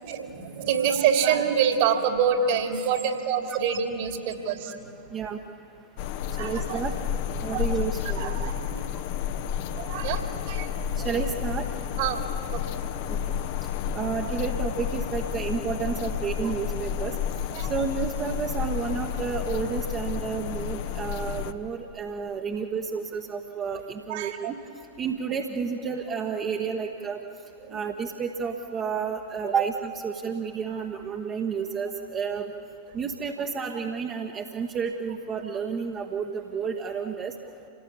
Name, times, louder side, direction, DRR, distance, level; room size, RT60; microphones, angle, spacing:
voice 1, 0.0-4.9 6.3-6.8 7.5-7.6 8.1-8.9 9.7-11.1 12.0-12.2 12.5-12.8 16.4-16.5 17.5-17.7 23.7-23.8 24.1-24.5 27.6-27.9, right 7 dB, 50° right, 4 dB, 2.8 m, -27 dB
sound 1, 6.0-21.5, left 9 dB, 50° left, 1.0 m, -31 dB
voice 2, 6.4-8.3 10.9-11.7 13.1-13.2 13.9-17.2 17.7-24.6 25.0-27.2 27.7-32.5 32.9-37.3, right 6 dB, 30° right, 2 dB, 1.3 m, -31 dB
27.5 x 18.0 x 8.6 m, 2.7 s
figure-of-eight pair, 90°, 0 cm